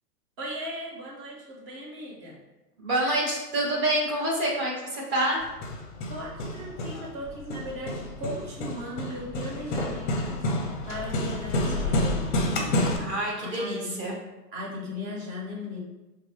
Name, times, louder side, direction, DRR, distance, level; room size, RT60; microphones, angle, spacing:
voice 1, 0.4-2.4 6.1-10.5 10.9-12.4 12.8-13.9 14.5-15.8, left 1 dB, 40° right, -4 dB, 1.3 m, -38 dB
voice 2, 2.8-5.4 13.0-14.1, right 1 dB, 25° right, -4 dB, 1.1 m, -27 dB
Hammer, 5.4-13.0, left 1 dB, 30° left, 0.5 m, -29 dB
4.6 x 2.2 x 3.4 m, 1.0 s
figure-of-eight pair, 115°, 48 cm